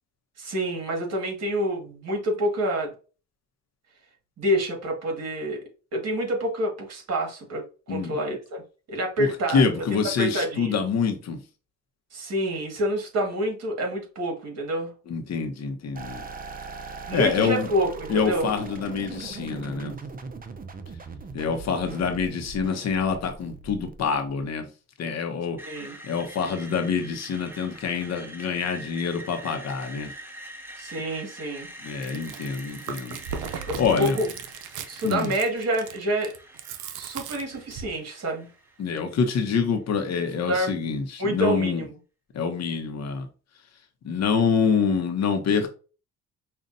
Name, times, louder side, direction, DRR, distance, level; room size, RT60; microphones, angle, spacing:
voice 1, 0.4-2.9 4.4-5.6 5.9-8.6 8.9-9.6 10.2-10.8 12.1-14.9 17.1-18.5 25.6-26.0 30.8-31.7 33.7-34.3 34.9-36.3 36.9-38.5 40.5-40.9 41.2-41.9, right 1 dB, 55° right, 1.9 m, -27 dB
voice 2, 9.2-11.4 15.1-16.3 17.1-17.7 18.1-20.0 21.3-24.7 25.0-25.6 26.0-30.1 31.8-33.2 33.7-34.2 35.0-35.3 38.8-41.8 42.3-43.3 44.0-45.7, left 5 dB, 60° left, 1.0 m, -26 dB
sound 1, 16.0-24.4, right 4 dB, 30° right, 0.6 m, -39 dB
Screech, 25.6-39.5, right 1 dB, 5° right, 1.0 m, -45 dB
Chewing mastication, 31.9-38.0, right 7 dB, 85° right, 0.6 m, -38 dB
5.5 x 2.5 x 2.6 m
cardioid pair, 90°, 30 cm